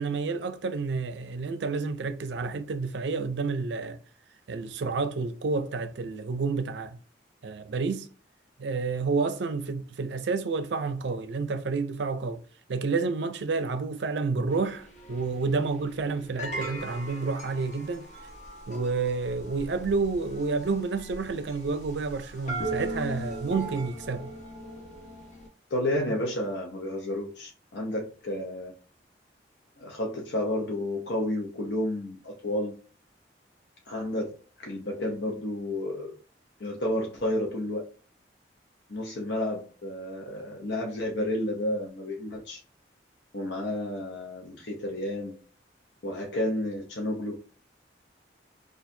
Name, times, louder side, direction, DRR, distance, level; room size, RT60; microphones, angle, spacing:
voice 1, 0.0-4.0 4.5-7.0 7.4-8.1 8.6-12.4 12.7-18.1 18.7-24.3, right 4 dB, 75° right, 0.4 m, -29 dB
sound 1, 14.5-25.5, right 2 dB, 40° left, 0.9 m, -39 dB
voice 2, 25.7-28.7 29.8-32.7 33.9-36.1 36.6-37.8 38.9-42.6 43.3-45.3 46.0-47.4, left 1 dB, 70° left, 0.7 m, -31 dB
4.3 x 2.4 x 2.6 m
head